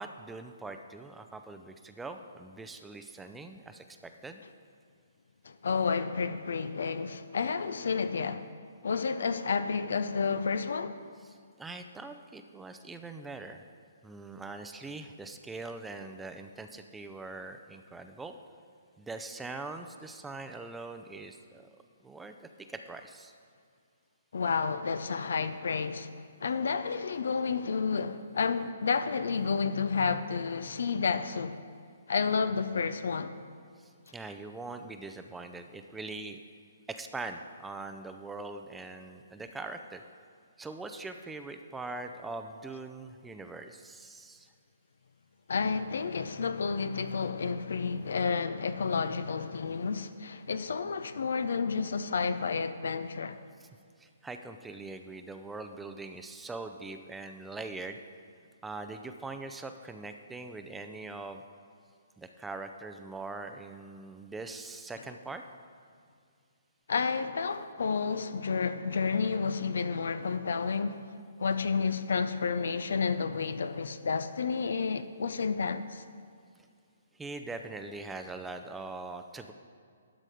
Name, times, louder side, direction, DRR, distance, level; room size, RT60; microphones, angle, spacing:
voice 1, 0.0-4.4 11.2-13.7 14.0-18.3 19.0-21.7 22.0-23.3 33.8-36.4 36.9-40.0 40.6-44.5 53.6-53.7 54.0-58.0 58.6-61.4 62.2-65.4 77.1-79.5, right 3 dB, 10° right, 0.5 m, -42 dB
voice 2, 5.4-8.5 8.8-11.0 24.3-26.1 26.4-31.6 32.1-33.4 45.5-53.4 66.9-71.1 71.4-76.0, left 5 dB, 70° left, 0.5 m, -30 dB
12.0 x 6.4 x 4.9 m
figure-of-eight pair, 130°, 0 cm